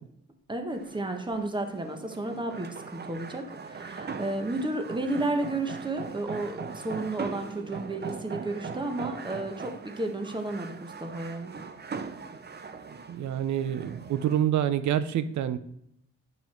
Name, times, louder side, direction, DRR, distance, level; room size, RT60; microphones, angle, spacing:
voice 1, 0.5-11.5, right 2 dB, 15° right, 5 dB, 1.5 m, -32 dB
sound 1, 0.7-14.4, right 5 dB, 35° right, 0.8 m, -40 dB
voice 2, 13.1-15.6, right 10 dB, 75° right, 13 dB, 0.7 m, -27 dB
9.5 x 5.7 x 4.5 m, 0.76 s
cardioid pair, 75°, 29 cm